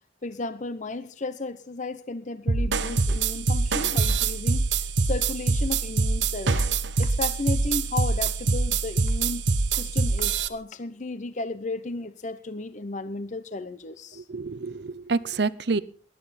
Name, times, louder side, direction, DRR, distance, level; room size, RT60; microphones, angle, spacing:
voice 1, 0.2-6.7 7.0-14.2, left 3 dB, 40° left, 12 dB, 0.8 m, -34 dB
sound 1, 2.5-10.5, right 4 dB, 75° right, 1.1 m, -24 dB
voice 2, 14.2-15.8, right 4 dB, 60° right, 17 dB, 0.7 m, -28 dB
18.5 x 11.5 x 4.2 m, 0.42 s
head